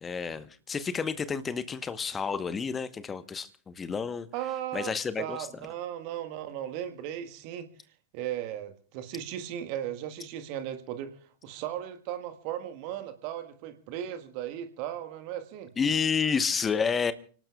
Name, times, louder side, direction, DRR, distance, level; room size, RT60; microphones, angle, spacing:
voice 1, 0.0-4.3 4.7-5.4 15.8-17.1, left 6 dB, 20° left, 1.1 m, -30 dB
voice 2, 4.3-7.7 8.1-15.7, right 11 dB, 45° right, 1.6 m, -36 dB
30.0 x 18.5 x 2.4 m
figure-of-eight pair, 90°, 0 cm